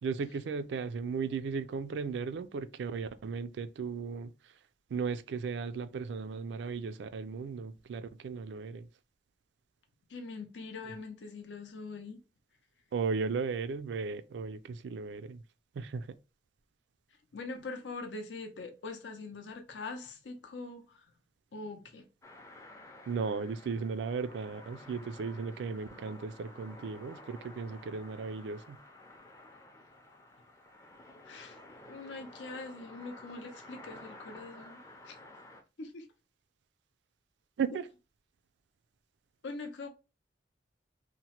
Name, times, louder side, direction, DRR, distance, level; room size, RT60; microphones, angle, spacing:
voice 1, 0.0-4.3 4.9-8.9 12.9-15.4 15.8-16.1 23.1-28.8 37.6-37.9, right 5 dB, 80° right, 0.3 m, -36 dB
voice 2, 10.1-12.2 17.3-21.1 21.5-22.1 31.2-31.6 31.9-35.2 35.8-36.1 37.7-37.8 39.4-39.9, left 3 dB, 90° left, 0.5 m, -43 dB
sound 1, 22.2-35.6, left 1 dB, 15° left, 0.4 m, -52 dB
2.9 x 2.1 x 2.8 m
head